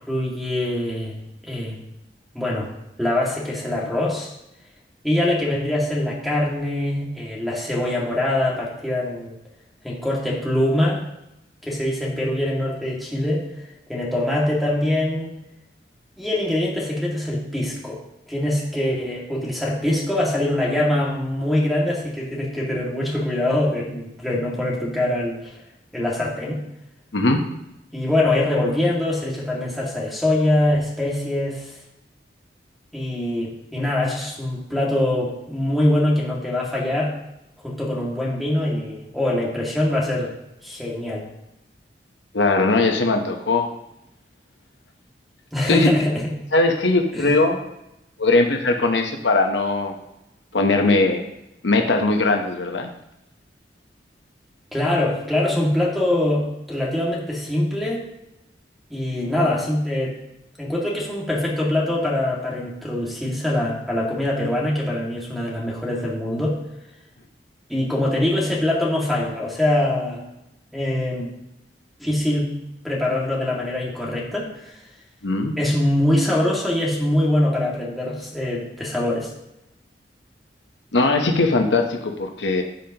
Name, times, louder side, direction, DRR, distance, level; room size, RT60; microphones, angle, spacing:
voice 1, 0.1-1.8 2.3-2.7 3.0-4.3 5.0-9.3 9.8-11.0 11.6-13.5 13.9-15.4 16.2-18.0 18.3-25.5 25.9-26.6 27.9-31.7 32.9-37.1 37.6-40.3 40.6-41.3 45.5-46.2 47.1-47.3 54.7-58.1 58.9-60.2 60.6-66.6 67.7-70.2 70.7-71.3 72.0-72.5 72.8-74.8 75.6-79.3, left 1 dB, ahead, -4 dB, 2.1 m, -23 dB
voice 2, 42.3-43.7 45.7-45.9 46.5-47.6 48.2-49.9 50.5-51.2 51.6-52.9 75.2-75.5 80.9-82.6, left 3 dB, 85° left, 4 dB, 1.0 m, -19 dB
15.5 x 5.3 x 3.0 m, 0.87 s
head